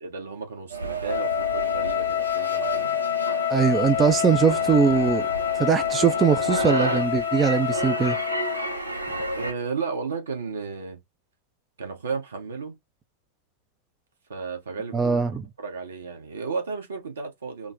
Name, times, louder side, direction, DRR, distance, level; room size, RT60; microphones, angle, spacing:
voice 1, 0.0-3.0 9.4-11.0 11.8-12.8 14.3-15.2 15.6-17.7, right 5 dB, 70° right, 1.1 m, -33 dB
sound 1, 0.7-9.5, right 2 dB, 85° right, 0.7 m, -31 dB
Wind instrument woodwind instrument, 1.1-8.7, left 12 dB, 55° left, 0.6 m, -27 dB
voice 2, 3.5-5.2 5.6-8.2 14.9-15.4, right 6 dB, 20° right, 0.4 m, -21 dB
3.8 x 2.1 x 2.5 m
figure-of-eight pair, 90°, 0 cm